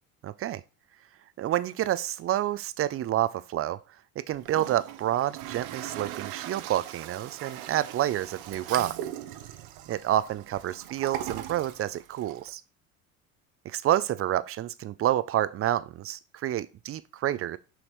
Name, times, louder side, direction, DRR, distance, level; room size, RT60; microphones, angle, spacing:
voice 1, 0.2-0.6 1.4-3.8 4.2-9.0 9.9-12.6 13.6-17.6, right 13 dB, 35° right, 0.5 m, -28 dB
Toilet flush, 4.3-12.5, right 12 dB, 60° right, 0.8 m, -40 dB
6.3 x 6.0 x 3.1 m
hypercardioid pair, 80°, 42 cm